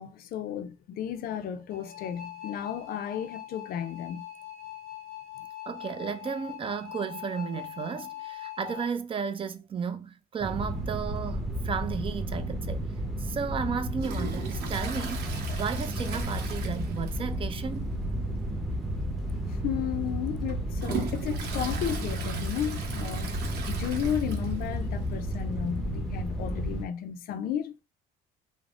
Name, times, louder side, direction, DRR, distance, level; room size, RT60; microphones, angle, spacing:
voice 1, 0.0-4.2 19.5-27.7, left 9 dB, 60° left, 0.4 m, -33 dB
sound 1, 1.7-8.9, left 12 dB, 55° right, 1.5 m, -42 dB
voice 2, 5.7-12.9 13.2-15.3 15.6-17.9, right 6 dB, 30° right, 0.4 m, -33 dB
sound 2, 10.4-26.9, equal, ahead, 0.7 m, -32 dB
Toilet flush, 14.0-17.4 17.7-17.8 18.2-18.3 19.2-19.3 19.8-24.7 25.1-25.2 25.3-25.4 26.5-26.6, right 5 dB, 75° right, 0.8 m, -39 dB
3.3 x 2.0 x 2.4 m
cardioid pair, 110°, 17 cm